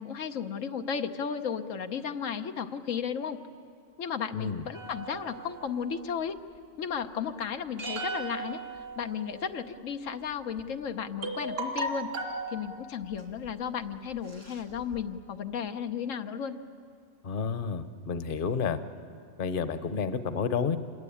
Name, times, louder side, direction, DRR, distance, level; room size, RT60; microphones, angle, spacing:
voice 1, 0.0-3.4 4.0-6.3 6.8-12.1 12.5-16.6, left 7 dB, 90° left, 7 dB, 1.3 m, -34 dB
voice 2, 4.3-4.6 17.2-18.8 19.4-20.8, left 6 dB, 45° left, 11 dB, 1.0 m, -30 dB
sound 1, 4.7-6.1 7.8-9.5 10.6-10.7 11.2-12.5 13.2-13.5 13.9-14.0 14.3-15.0, right 2 dB, 80° right, 3.0 m, -37 dB
27.0 x 20.5 x 8.6 m, 2.3 s
omnidirectional pair, 1.3 m